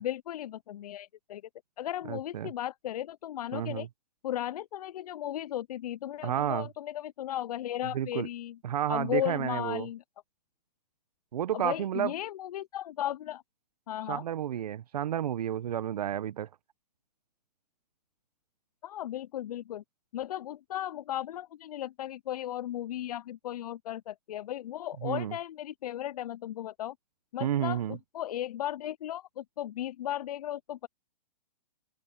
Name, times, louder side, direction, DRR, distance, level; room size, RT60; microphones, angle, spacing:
voice 1, 0.0-1.4 1.8-3.9 4.2-8.6 8.9-10.0 11.5-13.4 13.9-14.2 18.8-19.8 20.1-26.9 27.3-30.9, left 12 dB, 65° left, 0.6 m, -36 dB
voice 2, 2.1-2.5 3.5-3.9 6.2-6.7 7.9-8.3 8.6-9.9 11.3-12.1 14.1-16.5 25.0-25.4 27.4-28.0, right 10 dB, 65° right, 1.1 m, -31 dB
open air
hypercardioid pair, 130°, 21 cm